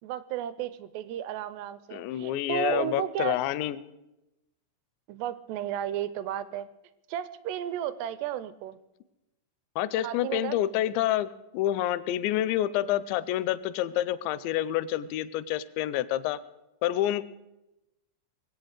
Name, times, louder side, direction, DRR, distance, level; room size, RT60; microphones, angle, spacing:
voice 1, 0.0-3.4 5.1-6.7 7.1-8.8 10.0-10.6, right 11 dB, 80° right, 15 dB, 2.5 m, -33 dB
voice 2, 1.9-3.8 9.8-16.4 16.8-17.2, left 13 dB, 85° left, 16 dB, 2.9 m, -28 dB
21.5 x 8.4 x 6.5 m, 0.94 s
omnidirectional pair, 5.1 m